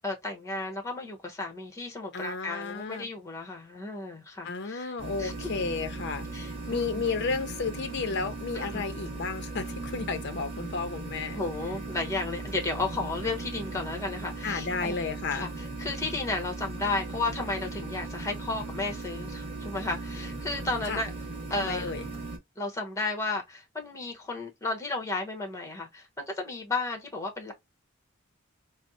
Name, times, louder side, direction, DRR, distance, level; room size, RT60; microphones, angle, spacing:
voice 1, 0.0-4.9 5.2-5.5 6.3-6.9 8.5-8.8 11.3-15.0 15.3-21.1 21.5-21.9 22.6-27.5, left 3 dB, 15° left, 1.0 m, -33 dB
voice 2, 2.1-3.1 4.4-11.4 14.4-15.5 20.8-21.0 21.6-22.1, left 4 dB, 55° left, 0.5 m, -33 dB
sound 1, 5.0-22.4, right 2 dB, 30° right, 1.4 m, -38 dB
4.2 x 2.0 x 2.7 m
head